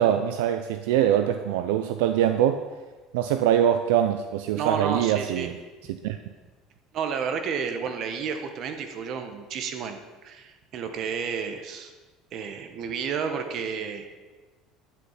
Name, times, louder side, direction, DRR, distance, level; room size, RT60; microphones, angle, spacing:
voice 1, 0.0-2.6 3.1-5.6 5.9-6.2, right 10 dB, 85° right, 8 dB, 0.5 m, -23 dB
voice 2, 4.5-5.5 6.9-11.9 12.3-14.2, right 6 dB, 55° right, 6 dB, 1.4 m, -31 dB
10.5 x 8.4 x 5.8 m, 1.3 s
supercardioid pair, 95°, 0 cm